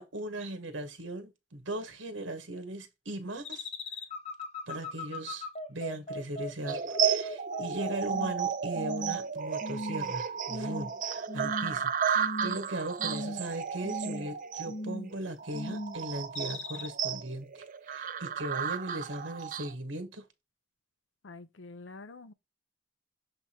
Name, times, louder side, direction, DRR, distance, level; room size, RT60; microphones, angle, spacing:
voice 1, 0.0-3.7 4.7-20.2, right 1 dB, 80° right, 1.2 m, -38 dB
sound 1, 3.4-8.4 8.7-9.2 9.6-10.1 10.5-10.9 11.3-11.8 12.1-12.7 13.0-13.5 13.8-14.3 14.6-15.2 15.5-16.0 16.3-16.9, left 1 dB, 35° left, 0.8 m, -38 dB
sound 2, 6.7-19.7, right 7 dB, 45° right, 0.5 m, -33 dB
voice 2, 21.2-22.3, left 3 dB, 75° left, 0.7 m, -47 dB
6.7 x 3.4 x 4.3 m
head